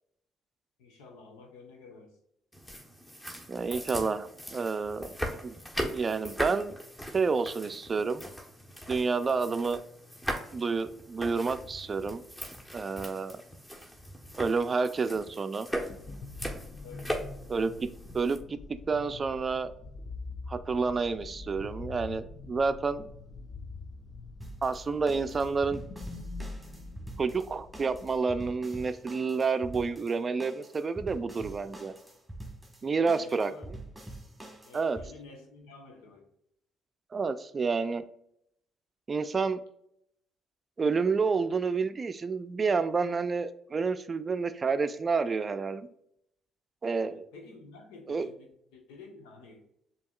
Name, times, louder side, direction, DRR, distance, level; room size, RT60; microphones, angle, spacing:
voice 1, 0.8-2.2 16.8-17.1 33.1-33.8 34.6-36.3 47.0-49.7, left 3 dB, 80° left, 3 dB, 0.9 m, -50 dB
sound 1, 2.5-18.4, equal, 10° left, 1.1 m, -39 dB
voice 2, 3.5-5.1 5.4-5.6 5.9-6.7 7.1-8.3 8.9-9.8 10.5-12.2 12.7-13.4 14.4-15.7 17.5-17.7 18.1-18.6 18.9-19.7 20.5-23.1 24.6-25.8 27.2-31.9 32.8-33.5 34.7-35.0 37.1-38.0 39.1-39.6 40.8-45.9 46.8-47.3 48.1-48.3, right 4 dB, 40° right, 11 dB, 0.4 m, -29 dB
sound 2, 15.8-28.2, left 3 dB, 45° left, 0.6 m, -44 dB
sound 3, 24.4-35.1, right 1 dB, 10° right, 1.4 m, -46 dB
6.9 x 2.9 x 2.4 m, 0.75 s
hypercardioid pair, 55°, 0 cm